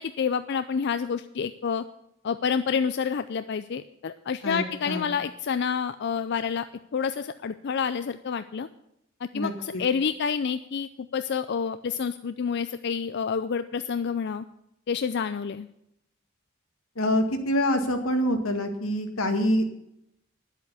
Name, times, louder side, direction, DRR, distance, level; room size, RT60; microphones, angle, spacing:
voice 1, 0.0-1.8 2.2-6.7 6.9-8.7 9.2-14.4 14.9-15.7, left 6 dB, 55° left, 11 dB, 0.4 m, -28 dB
voice 2, 4.4-5.1 9.3-9.8 17.0-19.6, equal, 85° left, 5 dB, 1.8 m, -26 dB
10.5 x 8.1 x 8.5 m, 0.80 s
head